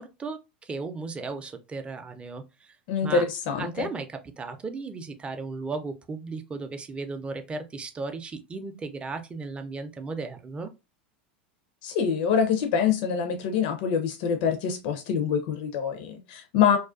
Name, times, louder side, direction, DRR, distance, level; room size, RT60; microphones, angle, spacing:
voice 1, 0.0-2.8 3.0-3.2 3.6-10.7, right 3 dB, 20° right, 0.5 m, -35 dB
voice 2, 2.9-3.9 11.8-16.8, left 7 dB, 60° left, 0.5 m, -25 dB
2.3 x 2.2 x 2.4 m
hypercardioid pair, 100°, 6 cm